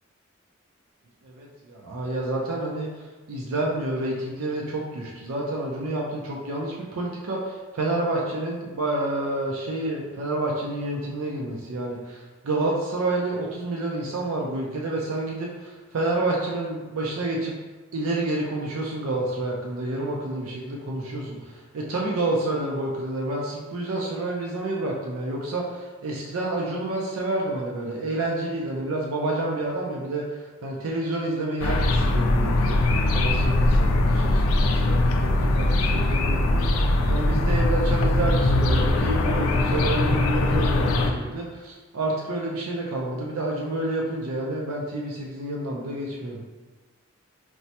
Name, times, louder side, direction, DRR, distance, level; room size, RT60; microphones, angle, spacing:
voice 1, 1.2-2.9 3.3-17.5 17.9-30.3 30.6-46.4, right 2 dB, 90° right, -2 dB, 0.5 m, -29 dB
sound 1, 31.6-41.1, left 2 dB, 85° left, 0.4 m, -21 dB
4.5 x 2.1 x 2.8 m, 1.3 s
head